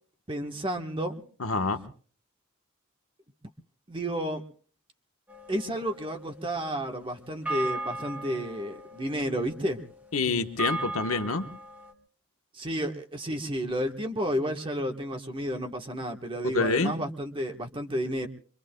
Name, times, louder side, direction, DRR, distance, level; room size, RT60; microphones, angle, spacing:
voice 1, 0.3-1.2 3.9-4.4 5.5-9.8 12.5-18.3, equal, 25° right, 4 dB, 1.2 m, -31 dB
voice 2, 1.4-1.8 10.1-11.4 16.4-16.9, left 3 dB, 85° left, 7 dB, 1.2 m, -27 dB
sound 1, 5.3-11.9, right 2 dB, 10° right, 1.6 m, -38 dB
26.0 x 24.0 x 2.2 m, 0.43 s
head